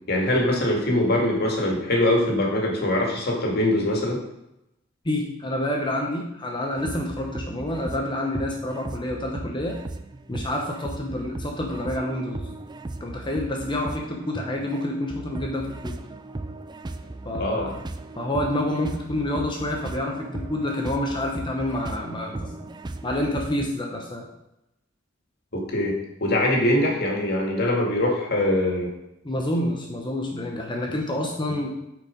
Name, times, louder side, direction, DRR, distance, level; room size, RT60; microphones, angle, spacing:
voice 1, 0.1-4.2 17.4-17.7 25.5-28.9, left 1 dB, 55° left, -1 dB, 2.1 m, -23 dB
voice 2, 5.0-9.8 10.3-12.4 13.0-15.9 17.2-17.7 18.2-22.7 23.0-24.3 29.2-31.7, left 1 dB, 25° left, 1 dB, 0.9 m, -28 dB
sound 1, 6.8-23.7, right 2 dB, 20° right, 0.4 m, -37 dB
8.9 x 4.8 x 5.1 m, 0.88 s
head